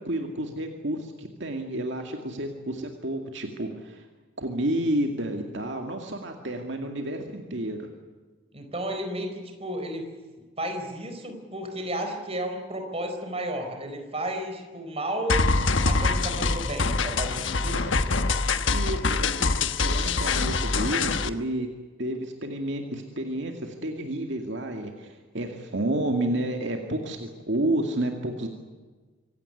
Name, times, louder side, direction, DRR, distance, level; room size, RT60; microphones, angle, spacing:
voice 1, 0.0-4.1 4.4-7.9 18.7-21.7 22.0-28.5, right 1 dB, 60° right, 3 dB, 2.3 m, -30 dB
voice 2, 8.5-10.1 10.4-15.5 15.8-17.9, right 1 dB, 30° right, 5 dB, 4.4 m, -33 dB
sound 1, 15.3-21.3, left 3 dB, 70° left, 1.2 m, -24 dB
25.5 x 17.0 x 9.8 m, 1.4 s
head